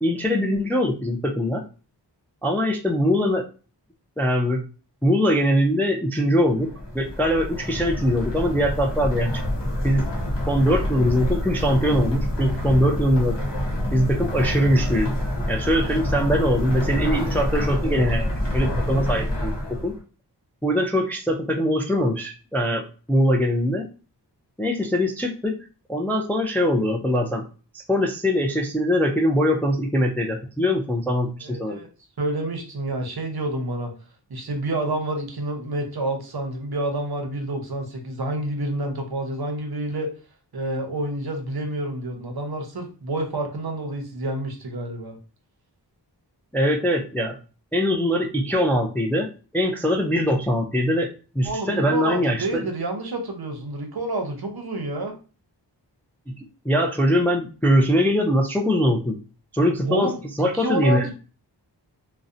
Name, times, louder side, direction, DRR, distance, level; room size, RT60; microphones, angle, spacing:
voice 1, 0.0-1.6 2.4-3.4 4.2-4.6 5.0-9.4 9.8-10.0 10.5-13.4 13.9-15.2 15.5-19.9 20.6-23.9 24.6-25.6 25.9-27.4 27.7-31.8 46.5-47.4 47.7-49.3 49.5-51.1 51.3-52.7 56.4-59.2 59.5-61.1, equal, 5° left, 2 dB, 0.3 m, -22 dB
sound 1, 6.5-20.0, left 1 dB, 80° left, 0.9 m, -27 dB
voice 2, 31.4-31.9 32.2-33.9 34.3-40.1 40.5-45.2 51.4-55.1 59.8-61.1, right 1 dB, 60° right, 4 dB, 0.7 m, -28 dB
2.6 x 2.1 x 2.4 m, 0.36 s
wide cardioid pair, 60°, 42 cm